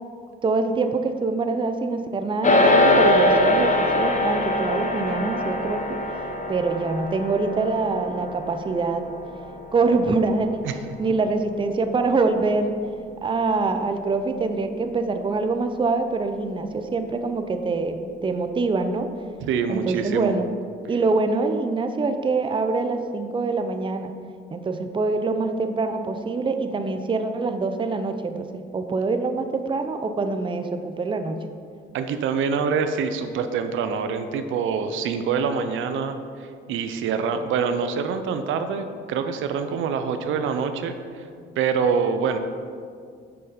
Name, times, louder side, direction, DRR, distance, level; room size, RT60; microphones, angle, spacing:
voice 1, 0.4-5.8 6.5-9.1 9.7-10.7 11.0-12.8 13.2-19.1 19.7-20.5 20.9-24.1 24.5-31.4, right 3 dB, 25° right, 7 dB, 0.6 m, -24 dB
sound 1, 2.4-11.9, left 1 dB, 40° left, 0.9 m, -23 dB
voice 2, 19.4-20.3 31.9-41.2 41.6-42.4, right 6 dB, 80° right, 8 dB, 0.6 m, -25 dB
6.8 x 5.5 x 5.0 m, 2.2 s
cardioid pair, 90°, 20 cm